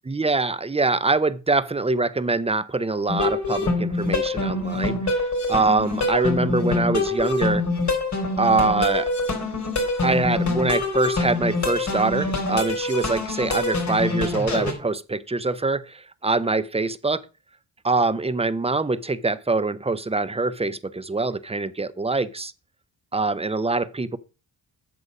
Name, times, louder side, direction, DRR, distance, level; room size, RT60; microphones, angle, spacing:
voice 1, 0.1-7.6 8.4-9.1 10.0-17.2 17.8-22.5 23.1-24.2, right 3 dB, 15° right, 0.6 m, -24 dB
sound 1, 3.1-14.7, left 3 dB, 45° left, 3.5 m, -25 dB
8.3 x 6.6 x 5.0 m
cardioid pair, 70°, 39 cm